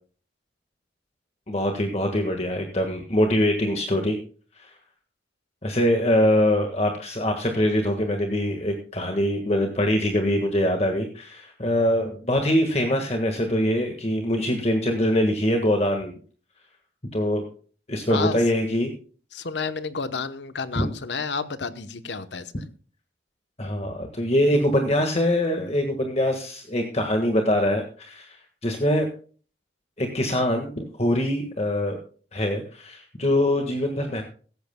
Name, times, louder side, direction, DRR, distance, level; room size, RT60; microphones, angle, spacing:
voice 1, 1.5-4.2 4.6-4.7 5.6-16.1 17.1-17.5 17.9-18.9 20.7-20.9 23.6-28.4 28.6-29.1 30.0-32.0 32.3-34.2, left 1 dB, 35° left, 3 dB, 1.6 m, -23 dB
voice 2, 19.3-22.6, left 4 dB, 75° left, 12 dB, 0.9 m, -31 dB
16.5 x 14.0 x 2.2 m, 0.41 s
head